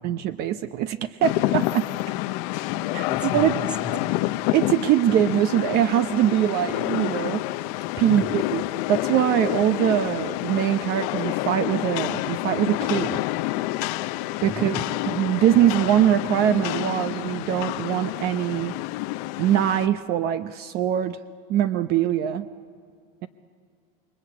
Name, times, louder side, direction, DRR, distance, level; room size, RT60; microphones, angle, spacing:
voice 1, 0.0-1.8 2.9-3.6 4.5-7.4 8.0-13.2 14.4-14.8 15.1-18.7 19.4-21.2 21.5-22.5, right 11 dB, 55° right, 11 dB, 0.8 m, -22 dB
Rain, 1.2-19.9, left 18 dB, 75° left, 0.7 m, -28 dB
voice 2, 2.7-4.2 8.0-8.3 14.4-14.8, left 1 dB, 5° right, 4 dB, 1.9 m, -35 dB
27.5 x 22.0 x 8.5 m, 2.3 s
supercardioid pair, 130°, 20 cm